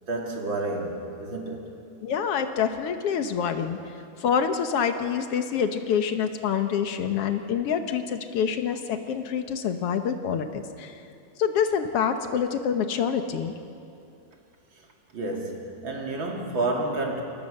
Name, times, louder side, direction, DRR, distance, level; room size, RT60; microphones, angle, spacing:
voice 1, 0.0-1.9 15.1-17.2, right 2 dB, 40° right, 0 dB, 3.0 m, -30 dB
voice 2, 2.0-3.8 4.2-11.0 11.4-13.5, left 7 dB, 65° left, 7 dB, 1.6 m, -26 dB
27.5 x 20.5 x 6.6 m, 2.6 s
omnidirectional pair, 3.8 m